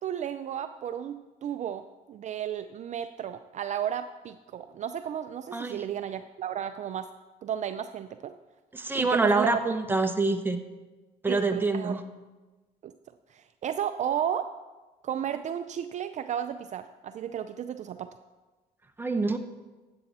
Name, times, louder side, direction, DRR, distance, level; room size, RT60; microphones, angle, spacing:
voice 1, 0.0-7.1 7.4-8.3 8.9-9.6 11.3-12.0 12.8-12.9 13.3-14.5 15.0-18.1, right 9 dB, 45° right, 9 dB, 0.4 m, -33 dB
voice 2, 5.5-5.8 8.7-10.6 11.2-12.0 19.0-19.4, right 3 dB, 10° right, 6 dB, 0.9 m, -26 dB
13.5 x 8.7 x 4.2 m, 1.2 s
cardioid pair, 110°, 17 cm